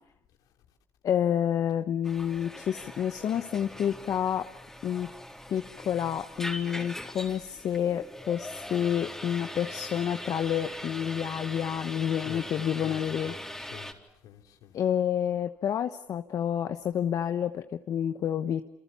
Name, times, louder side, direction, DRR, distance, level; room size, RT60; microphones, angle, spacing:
voice 1, 1.0-4.5 4.8-5.1 5.5-13.3 14.7-18.6, left 9 dB, 65° left, 1.1 m, -29 dB
sound 1, 2.0-13.9, left 1 dB, 5° left, 3.9 m, -41 dB
voice 2, 12.1-14.0 14.2-14.7, left 9 dB, 80° left, 3.2 m, -47 dB
28.5 x 27.0 x 7.0 m
supercardioid pair, 70°, 6 cm